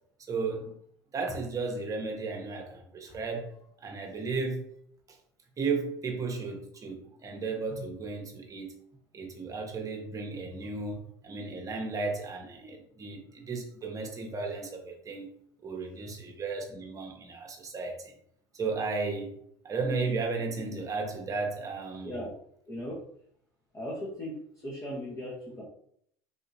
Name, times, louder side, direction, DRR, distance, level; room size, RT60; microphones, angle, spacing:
voice 1, 0.3-0.7 1.1-3.5 3.8-4.6 5.6-8.7 9.1-15.3 15.6-18.1 18.5-19.3 19.6-22.1, right 4 dB, 30° right, 2 dB, 1.0 m, -34 dB
voice 2, 22.0-22.3 22.7-23.0 23.7-24.4 24.6-25.6, equal, 25° left, -4 dB, 1.1 m, -37 dB
3.5 x 2.7 x 2.8 m, 0.67 s
hypercardioid pair, 80°, 11 cm